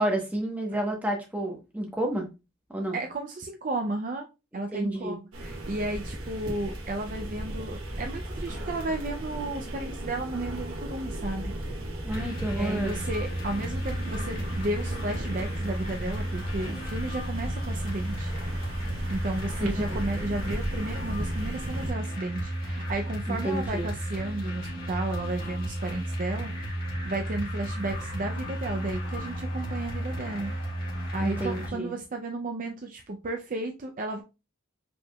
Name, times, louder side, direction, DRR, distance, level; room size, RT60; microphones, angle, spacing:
voice 1, 0.0-2.3 2.7-3.0 4.7-5.2 12.0-13.0 19.6-19.7 23.3-23.9 31.2-31.9, right 1 dB, 10° right, 1.0 m, -30 dB
voice 2, 2.9-4.3 4.5-11.5 12.5-18.3 19.1-26.5 27.1-30.5 31.1-34.2, right 2 dB, 40° right, 0.5 m, -33 dB
sound 1, 5.3-21.9, right 1 dB, 85° right, 1.4 m, -36 dB
sound 2, 12.1-31.7, equal, 45° left, 2.0 m, -33 dB
5.0 x 3.5 x 2.3 m
head